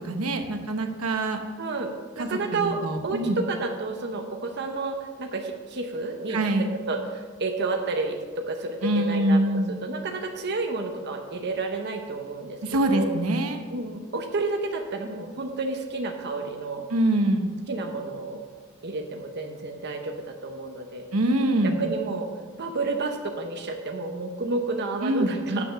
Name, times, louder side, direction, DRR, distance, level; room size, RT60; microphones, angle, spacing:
voice 1, 0.0-1.4 2.2-3.4 6.3-6.7 8.8-9.7 12.6-13.6 16.9-17.5 21.1-21.8 25.0-25.6, right 1 dB, 85° right, 5 dB, 1.0 m, -24 dB
voice 2, 1.6-1.9 2.2-2.8 3.0-6.5 6.9-9.4 9.8-12.6 12.8-13.1 13.7-16.9 17.7-18.4 18.8-21.1 21.6-22.3 22.6-25.6, right 3 dB, 50° right, 3 dB, 0.8 m, -30 dB
9.7 x 6.8 x 5.7 m, 1.5 s
head